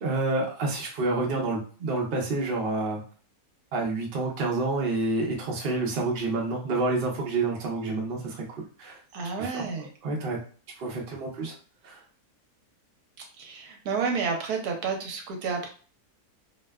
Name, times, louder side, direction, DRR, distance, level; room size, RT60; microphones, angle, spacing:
voice 1, 0.0-3.0 3.7-8.4 8.8-9.0 9.4-9.7 10.0-10.4 10.8-11.5 11.8-12.0, right 2 dB, 55° right, 0 dB, 0.6 m, -28 dB
voice 2, 9.1-9.9 13.4-15.7, right 5 dB, 80° right, 3 dB, 1.1 m, -30 dB
2.6 x 2.1 x 2.2 m, 0.40 s
omnidirectional pair, 1.6 m